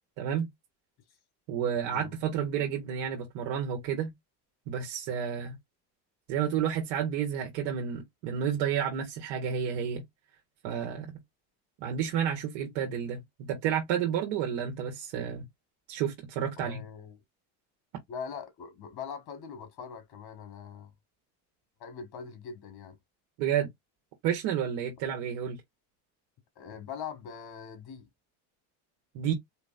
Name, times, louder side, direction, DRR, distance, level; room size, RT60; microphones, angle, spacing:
voice 1, 0.2-0.5 1.5-4.1 4.7-5.5 6.3-10.0 10.6-11.1 11.8-15.4 15.9-16.8 23.4-23.7 24.2-25.6 29.1-29.3, right 8 dB, 80° right, 1.4 m, -30 dB
voice 2, 16.6-17.2 18.1-20.9 21.8-23.0 26.6-28.1, left 6 dB, 55° left, 1.9 m, -42 dB
4.4 x 3.0 x 2.6 m
supercardioid pair, 95°, 46 cm